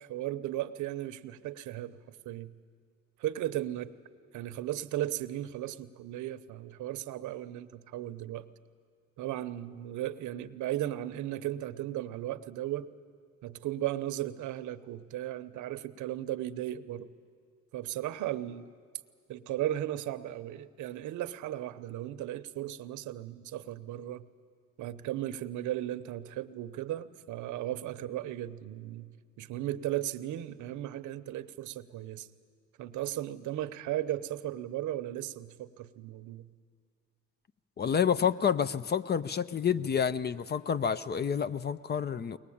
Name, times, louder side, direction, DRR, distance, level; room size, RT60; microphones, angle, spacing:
voice 1, 0.0-2.5 3.2-3.9 4.3-8.5 9.2-12.9 13.4-17.1 17.7-18.7 19.3-24.3 24.8-29.1 29.4-32.3 32.8-36.5, right 13 dB, 80° right, 12 dB, 0.9 m, -36 dB
voice 2, 37.8-42.4, left 7 dB, 35° left, 15 dB, 0.6 m, -29 dB
22.5 x 19.5 x 8.6 m, 2.1 s
cardioid pair, 90°, 29 cm